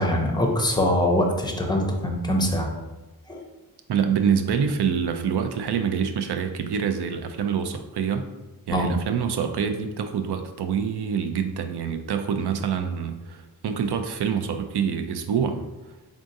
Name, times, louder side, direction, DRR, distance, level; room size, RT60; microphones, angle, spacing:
voice 1, 0.0-2.7 3.3-3.4 8.7-8.9, left 1 dB, 10° left, 2 dB, 0.6 m, -23 dB
voice 2, 3.9-8.3 8.7-15.7, right 7 dB, 75° right, 8 dB, 0.5 m, -26 dB
3.7 x 3.6 x 2.6 m, 1.1 s
wide cardioid pair, 80°, 40 cm